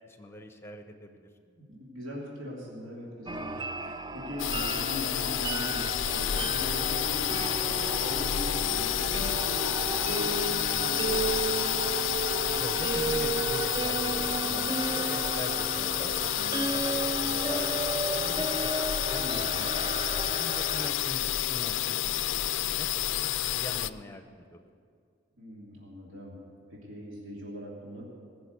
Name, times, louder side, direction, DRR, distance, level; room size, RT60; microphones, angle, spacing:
voice 1, 0.1-1.1 12.5-17.7 17.9-18.7 19.1-19.2 19.5-24.6, left 1 dB, 10° left, 6 dB, 0.7 m, -43 dB
voice 2, 1.4-11.6 19.2-19.7 25.4-26.4 26.7-28.0, left 1 dB, 85° right, -5 dB, 3.1 m, -41 dB
sound 1, 3.3-20.9, right 3 dB, 20° right, 0.4 m, -34 dB
sound 2, 4.4-23.9, left 12 dB, 75° left, 0.4 m, -30 dB
20.0 x 6.9 x 8.3 m, 2.2 s
head